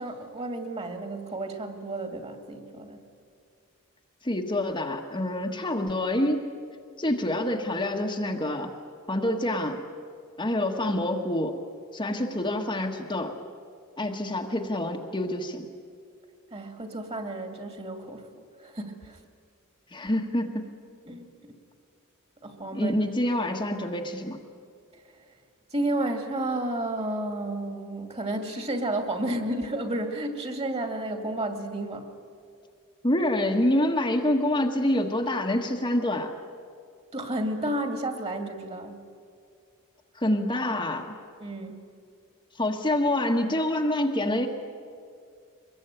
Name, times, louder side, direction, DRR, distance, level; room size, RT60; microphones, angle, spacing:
voice 1, 0.0-3.0 16.5-19.2 21.0-21.5 22.4-22.9 24.9-25.3 25.7-32.1 37.1-39.0 41.4-41.8, right 1 dB, 30° right, 5 dB, 2.5 m, -32 dB
voice 2, 4.2-6.5 7.0-8.7 9.1-9.8 10.4-11.6 11.9-13.4 14.0-15.7 19.9-20.7 22.7-24.4 33.0-36.3 40.1-41.2 42.6-44.5, left 1 dB, 20° left, 1 dB, 1.4 m, -26 dB
24.5 x 22.0 x 9.0 m, 2.3 s
head